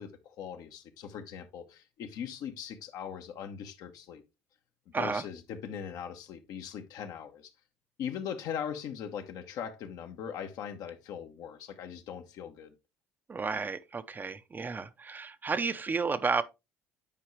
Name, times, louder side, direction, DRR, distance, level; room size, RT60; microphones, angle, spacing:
voice 1, 0.0-4.2 5.0-7.5 8.0-12.7, left 8 dB, 65° left, 1.2 m, -40 dB
voice 2, 4.9-5.2 13.3-16.4, right 4 dB, 30° right, 0.7 m, -32 dB
9.1 x 4.8 x 3.2 m
supercardioid pair, 75°, 7 cm